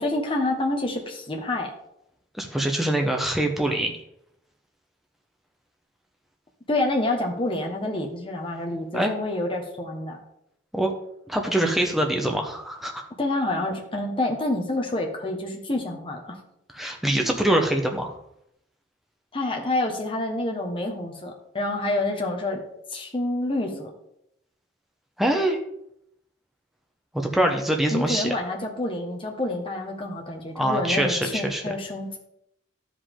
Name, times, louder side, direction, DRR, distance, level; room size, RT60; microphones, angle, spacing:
voice 1, 0.0-1.7 6.7-10.2 13.2-16.4 19.3-22.6 22.9-23.9 27.9-32.2, left 2 dB, 30° left, 1 dB, 1.2 m, -28 dB
voice 2, 2.3-3.9 8.9-9.1 10.7-10.9 11.3-13.0 16.7-18.1 25.2-25.6 27.1-28.3 30.5-31.6, right 1 dB, ahead, 2 dB, 0.9 m, -24 dB
12.0 x 5.1 x 3.7 m, 0.78 s
head